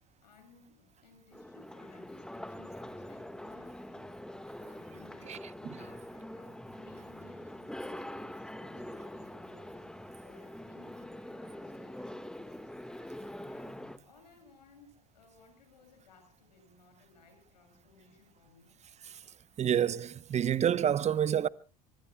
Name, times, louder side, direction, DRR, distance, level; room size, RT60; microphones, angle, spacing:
voice 1, 0.2-4.1 4.6-12.7 13.4-13.7 14.0-18.7, left 4 dB, 90° left, 7.8 m, -61 dB
sound 1, 1.3-14.0, left 1 dB, 5° left, 1.6 m, -44 dB
voice 2, 19.6-21.5, right 9 dB, 35° right, 0.9 m, -28 dB
25.0 x 24.5 x 2.3 m
hypercardioid pair, 80°, 21 cm